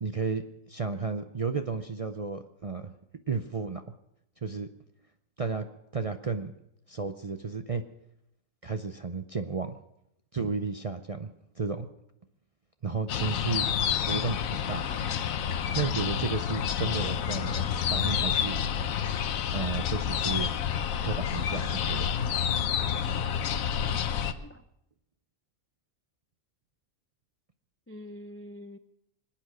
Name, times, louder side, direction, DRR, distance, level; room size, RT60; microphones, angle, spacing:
voice 1, 0.0-2.9 3.3-3.8 4.4-4.7 5.4-5.7 5.9-6.5 6.9-7.8 8.6-9.8 10.3-11.3 11.6-11.9 12.8-13.7 14.0-14.9 15.8-18.6 19.5-20.5 21.0-22.1, right 4 dB, 40° right, 8 dB, 0.5 m, -32 dB
sound 1, 13.1-24.3, left 8 dB, 85° left, 1.2 m, -29 dB
voice 2, 23.5-24.6 27.9-28.8, left 1 dB, 20° left, 9 dB, 0.3 m, -46 dB
24.5 x 8.8 x 6.2 m, 0.80 s
omnidirectional pair, 1.4 m